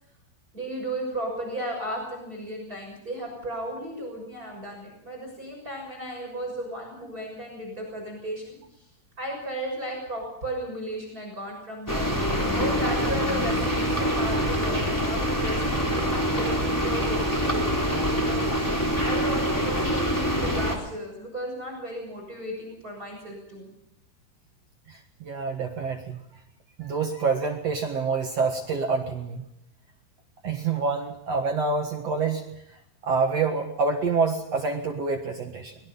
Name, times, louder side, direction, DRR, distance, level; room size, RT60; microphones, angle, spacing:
voice 1, 0.5-8.9 9.2-23.7, right 1 dB, 20° right, 0 dB, 6.9 m, -35 dB
sound 1, 11.9-20.8, equal, 5° left, 3.1 m, -25 dB
voice 2, 24.9-26.2 26.8-29.4 30.4-32.5 33.0-35.8, right 4 dB, 55° right, 3 dB, 1.9 m, -27 dB
23.5 x 21.5 x 5.6 m, 0.78 s
omnidirectional pair, 4.8 m